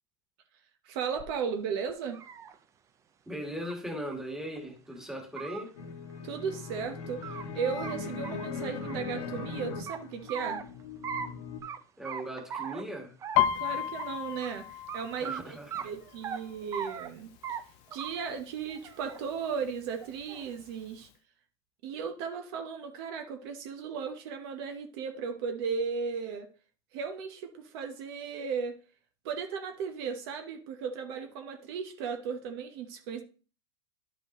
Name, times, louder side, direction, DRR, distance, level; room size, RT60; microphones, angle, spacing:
voice 1, 0.8-2.2 6.2-10.6 13.6-15.6 15.8-17.3 17.9-21.1 21.8-26.5 26.9-28.8 29.2-33.2, right 6 dB, 60° right, 1.0 m, -36 dB
sound 1, 1.2-1.3 1.9-2.5 3.6-3.7 4.0-4.1 4.6-4.7 5.2-5.6 6.8-7.4 7.8-7.9 8.2-9.5 9.9-10.6 11.0-11.3 11.6-11.8 12.0-12.8 13.2-13.6 14.0-14.1 14.4-14.5 14.9-15.0 15.2-15.4 15.7-16.4 16.7-17.1 17.4-17.6 17.9-18.3 18.7-19.2 20.0-20.5, right 7 dB, 20° right, 0.5 m, -39 dB
voice 2, 3.3-5.7 12.0-13.1 15.2-15.9, equal, 5° right, 1.6 m, -38 dB
sound 2, 5.7-11.6, left 4 dB, 80° left, 1.6 m, -39 dB
Piano, 13.4-17.0 17.4-17.8 18.1-18.7 19.3-19.4 19.7-20.7 21.1-21.2, left 11 dB, 45° left, 0.4 m, -32 dB
11.0 x 5.2 x 3.0 m
supercardioid pair, 145°, 15 cm